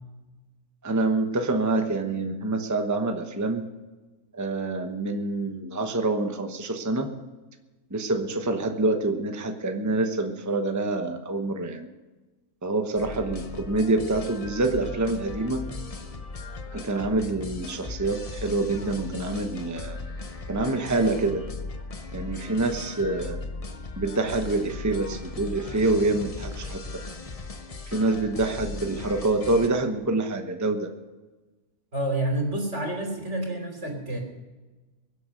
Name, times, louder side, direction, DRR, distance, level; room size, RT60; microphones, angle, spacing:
voice 1, 0.8-3.7 4.3-7.1 7.9-11.9 12.6-15.6 16.7-20.0 20.5-21.5 22.1-23.4 24.0-26.8 27.9-30.9, right 2 dB, 15° right, 5 dB, 1.0 m, -26 dB
sound 1, 13.0-29.7, left 3 dB, 30° left, 0.8 m, -38 dB
voice 2, 31.9-34.2, right 1 dB, 50° right, 2 dB, 3.7 m, -28 dB
23.0 x 8.3 x 6.6 m, 1.2 s
omnidirectional pair, 1.5 m